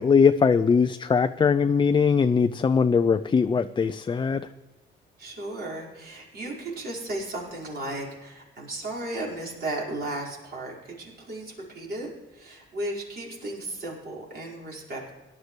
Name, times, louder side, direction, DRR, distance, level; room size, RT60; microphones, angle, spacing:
voice 1, 0.0-4.5, left 5 dB, 25° left, 10 dB, 0.4 m, -21 dB
voice 2, 5.2-15.1, right 1 dB, 55° right, -3 dB, 5.3 m, -35 dB
17.5 x 11.5 x 3.3 m, 1.2 s
cardioid pair, 90°, 20 cm